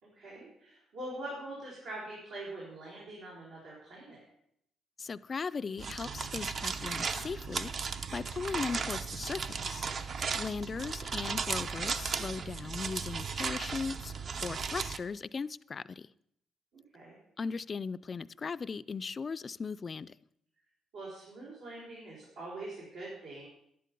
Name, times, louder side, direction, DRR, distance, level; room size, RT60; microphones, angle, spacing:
voice 1, 0.0-4.2 16.7-17.2 20.9-23.5, right 2 dB, 90° right, 4.6 m, -44 dB
voice 2, 5.0-9.9 10.3-16.1 17.4-20.1, left 5 dB, 40° left, 0.4 m, -38 dB
sound 1, 5.8-15.0, right 5 dB, 55° right, 0.7 m, -36 dB
11.0 x 10.5 x 5.3 m
cardioid pair, 90°, 0 cm